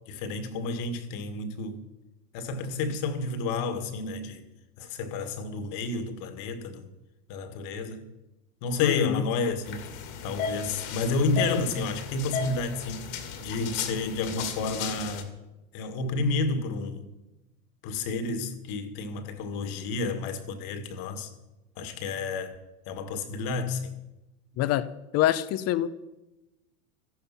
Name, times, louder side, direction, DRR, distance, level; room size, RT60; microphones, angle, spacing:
voice 1, 0.1-1.8 2.3-4.5 4.8-6.9 7.3-8.1 8.6-9.9 10.2-15.3 15.7-17.1 17.8-21.3 21.8-22.6 22.9-23.9, left 3 dB, 50° left, 2.0 m, -30 dB
voice 2, 8.8-9.2 24.6-25.9, left 13 dB, 35° left, 0.8 m, -26 dB
sound 1, 9.6-15.2, left 6 dB, 70° left, 2.4 m, -35 dB
14.0 x 11.5 x 5.8 m
hypercardioid pair, 110°, 43 cm